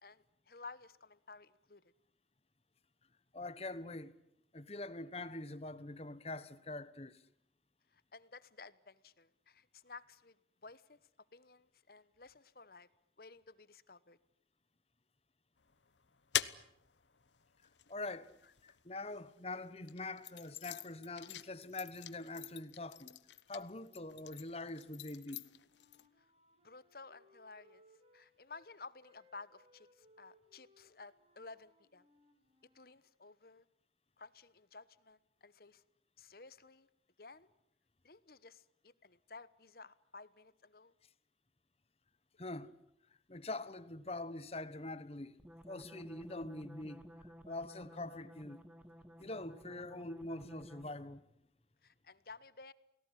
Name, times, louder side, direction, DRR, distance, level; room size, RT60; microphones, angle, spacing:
voice 1, 0.0-1.9 7.9-10.4 10.6-11.0 11.3-12.9 13.2-14.2 26.2-26.3 26.6-27.8 28.1-32.1 32.7-33.6 34.2-35.8 36.2-36.9 37.2-37.5 38.0-40.9 51.8-52.7, left 4 dB, 55° left, 1.2 m, -54 dB
voice 2, 3.3-4.1 4.5-7.2 17.9-18.3 18.6-23.2 23.5-25.5 42.4-42.7 43.3-45.4 45.7-48.6 49.2-51.2, left 2 dB, 35° left, 1.3 m, -44 dB
sound 1, 15.6-19.2 19.8-26.1, left 11 dB, 85° left, 1.1 m, -45 dB
Wind instrument woodwind instrument, 25.3-28.7 29.0-32.9, left 1 dB, 35° right, 3.5 m, -69 dB
sound 2, 45.4-51.2, equal, 10° right, 1.8 m, -55 dB
29.5 x 19.0 x 10.0 m
head